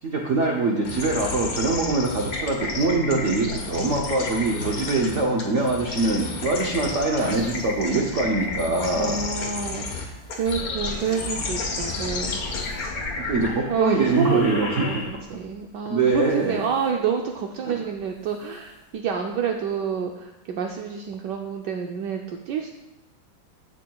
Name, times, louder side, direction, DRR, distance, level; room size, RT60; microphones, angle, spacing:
voice 1, 0.0-9.2 13.2-15.0 15.9-16.6, right 3 dB, 55° right, 0 dB, 0.8 m, -23 dB
sound 1, 0.8-15.4, left 3 dB, 55° left, 1.6 m, -32 dB
sound 2, 2.7-6.1 6.5-10.6 11.0-11.4 11.9-12.3 12.6-12.9 13.5-13.6 13.9-14.0 15.2-15.3 16.0-16.8 18.0-18.2 18.5-18.6 19.0-19.1, left 2 dB, 75° left, 0.5 m, -38 dB
voice 2, 8.9-12.4 13.7-22.7, right 6 dB, 75° right, 3 dB, 1.1 m, -28 dB
11.5 x 7.4 x 2.3 m, 0.97 s
omnidirectional pair, 2.1 m